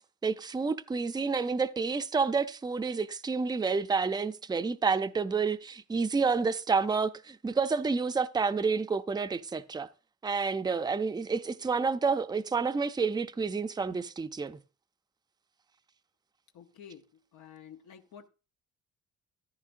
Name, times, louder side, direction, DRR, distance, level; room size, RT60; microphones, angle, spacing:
voice 1, 0.2-9.9 10.2-14.6, right 4 dB, 15° right, 0.5 m, -29 dB
voice 2, 16.5-18.3, left 8 dB, 75° left, 0.9 m, -51 dB
14.0 x 11.0 x 2.5 m
cardioid pair, 90°, 30 cm